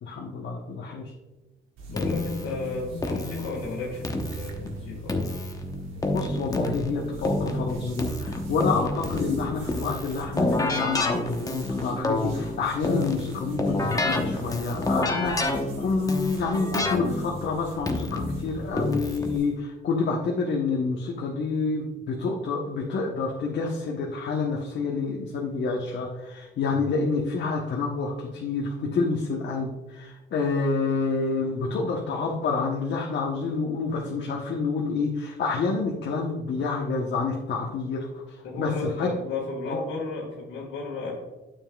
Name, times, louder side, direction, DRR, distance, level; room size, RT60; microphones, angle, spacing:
voice 1, 0.0-1.1 6.1-39.1 39.6-39.8, left 4 dB, 65° left, -1 dB, 1.0 m, -28 dB
sound 1, 1.8-19.6, right 4 dB, 85° right, 1.5 m, -44 dB
voice 2, 1.9-5.3 26.7-26.9 38.4-41.1, left 3 dB, 90° left, -6 dB, 1.8 m, -33 dB
Keyboard (musical), 2.0-19.4, left 2 dB, 15° left, 0.9 m, -29 dB
9.0 x 7.0 x 2.3 m, 1.1 s
cardioid pair, 90°, 20 cm